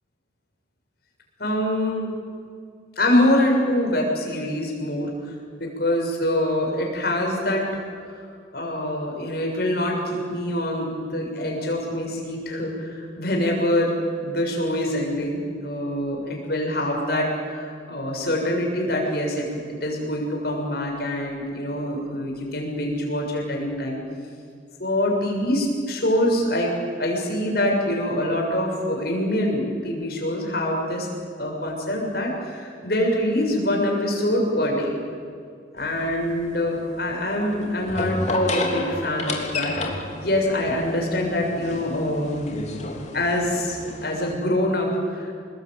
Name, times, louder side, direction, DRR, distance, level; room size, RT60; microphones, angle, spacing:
voice 1, 1.4-2.1 3.0-5.3 5.6-7.8 8.5-13.9 14.2-24.0 24.8-31.1 31.4-34.9 35.7-42.7 43.1-45.3, left 1 dB, 55° left, 0 dB, 6.9 m, -25 dB
sound 1, 35.8-44.3, left 2 dB, 40° left, 3.3 m, -32 dB
27.5 x 20.5 x 9.3 m, 2.3 s
head